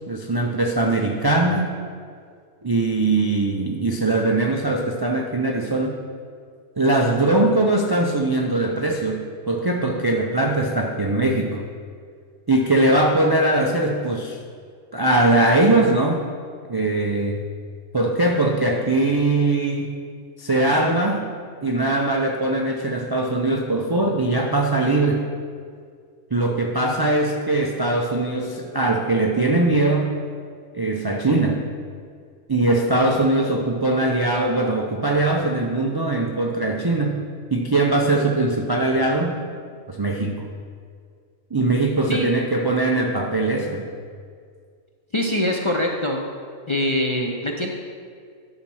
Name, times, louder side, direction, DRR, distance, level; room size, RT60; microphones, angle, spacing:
voice 1, 0.1-1.7 2.6-6.0 6.8-11.6 12.5-14.4 14.9-16.2 16.7-17.4 17.9-19.9 20.4-21.2 21.6-25.3 26.3-30.2 30.7-31.6 32.5-37.2 37.5-39.4 39.9-40.5 41.5-43.9, right 2 dB, 40° right, 0 dB, 0.3 m, -21 dB
voice 2, 45.1-46.2 46.7-47.7, left 1 dB, 35° left, 0 dB, 0.5 m, -23 dB
11.0 x 4.3 x 6.1 m, 2.1 s
omnidirectional pair, 1.3 m